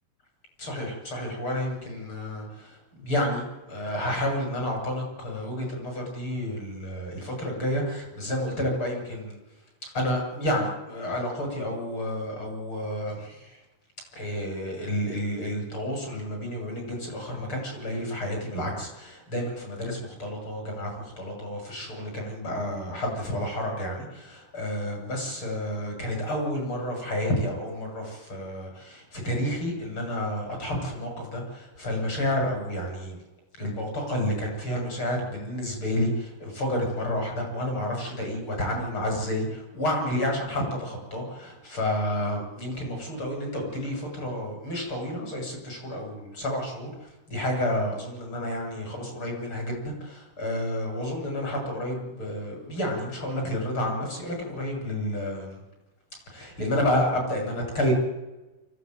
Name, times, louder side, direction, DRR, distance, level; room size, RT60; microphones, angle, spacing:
voice 1, 0.6-9.4 9.8-13.6 14.1-33.2 33.6-55.6 56.3-57.9, left 1 dB, 30° left, 2 dB, 7.9 m, -30 dB
24.5 x 16.0 x 9.5 m, 1.1 s
omnidirectional pair, 4.6 m